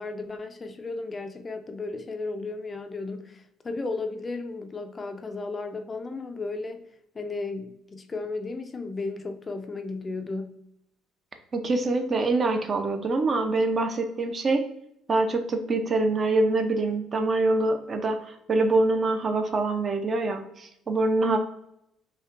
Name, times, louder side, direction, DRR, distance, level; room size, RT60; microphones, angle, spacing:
voice 1, 0.0-6.8 7.1-10.6 21.2-21.4, left 3 dB, 25° left, 7 dB, 0.4 m, -34 dB
voice 2, 11.5-14.6 15.1-21.4, right 2 dB, 35° right, 6 dB, 0.5 m, -25 dB
5.3 x 2.2 x 2.5 m, 0.78 s
cardioid pair, 115°, 0 cm